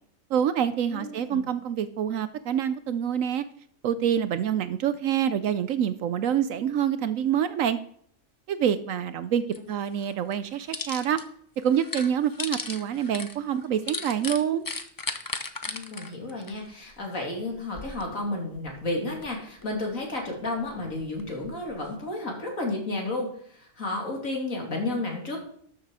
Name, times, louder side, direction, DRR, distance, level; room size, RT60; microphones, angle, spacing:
voice 1, 0.3-3.4 3.8-7.8 8.5-11.2 11.6-14.7, right 9 dB, 70° right, 13 dB, 0.9 m, -26 dB
voice 2, 0.9-1.4 15.6-25.4, left 2 dB, 60° left, 0 dB, 3.1 m, -32 dB
sound 1, 9.5-9.6 10.0-11.2 11.6-17.1 17.5-18.2 18.6-19.8 20.3-21.9, left 3 dB, 35° left, 0.3 m, -36 dB
12.5 x 6.7 x 4.9 m, 0.64 s
omnidirectional pair, 1.6 m